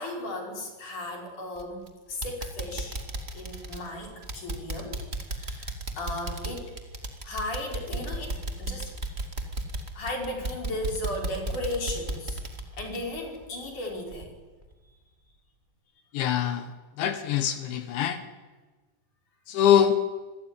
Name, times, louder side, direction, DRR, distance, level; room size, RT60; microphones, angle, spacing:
voice 1, 0.0-1.8 2.1-3.0 3.3-5.0 5.3-6.7 7.2-8.9 9.9-12.5 12.7-14.4, left 1 dB, 40° left, 2 dB, 6.5 m, -35 dB
sound 1, 1.5-1.9 2.2-13.8 14.1-14.2 14.7-14.8, right 2 dB, 55° right, 0.6 m, -35 dB
voice 2, 16.1-16.7 17.0-18.2 19.5-20.0, left 9 dB, 70° left, 9 dB, 3.5 m, -23 dB
27.0 x 21.0 x 10.0 m, 1.3 s
omnidirectional pair, 5.8 m